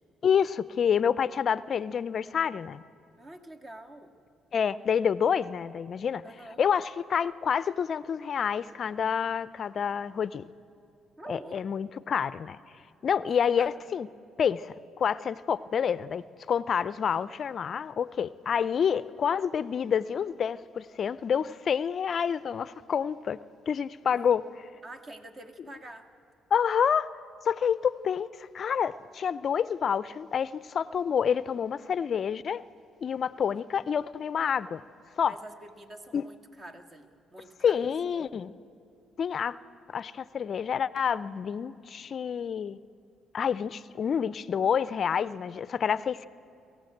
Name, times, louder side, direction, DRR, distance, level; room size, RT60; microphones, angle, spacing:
voice 1, 0.2-2.8 4.5-6.2 6.6-10.4 11.3-12.6 13.0-14.1 14.4-23.4 23.7-24.4 26.5-27.1 27.4-32.6 33.0-34.8 35.2-35.4 36.1-36.2 37.6-38.5 39.2-39.6 39.9-42.8 43.3-46.3, left 7 dB, 50° left, 17 dB, 0.4 m, -28 dB
voice 2, 3.2-4.2 6.2-6.6 9.3-9.4 11.2-11.6 13.2-13.7 24.1-24.3 24.8-26.1 35.3-37.9, right 1 dB, 35° right, 6 dB, 1.8 m, -47 dB
23.0 x 15.0 x 7.9 m, 2.7 s
supercardioid pair, 75°, 0 cm